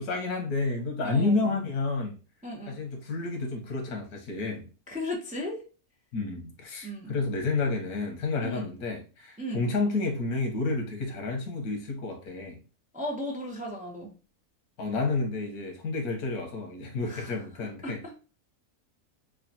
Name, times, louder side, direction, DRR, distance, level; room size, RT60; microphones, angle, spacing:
voice 1, 0.0-2.1 2.7-4.7 6.1-12.6 14.8-18.0, left 3 dB, 90° left, 1.5 m, -30 dB
voice 2, 1.0-1.5 2.4-2.8 4.9-5.6 6.8-7.1 8.4-8.7 9.4-9.7 12.9-14.1 17.0-18.1, left 1 dB, 10° right, 0.5 m, -36 dB
4.8 x 2.3 x 2.8 m
omnidirectional pair, 1.6 m